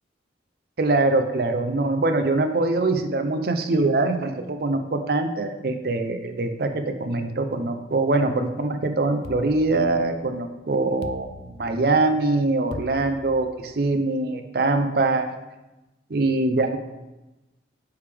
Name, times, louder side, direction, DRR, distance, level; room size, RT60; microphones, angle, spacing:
voice 1, 0.8-15.3 16.1-16.8, right 2 dB, 55° right, 6 dB, 0.5 m, -23 dB
sound 1, 9.2-10.4 11.0-12.1 12.7-13.8, left 4 dB, 60° left, 0.3 m, -41 dB
9.3 x 3.4 x 3.5 m, 1.0 s
head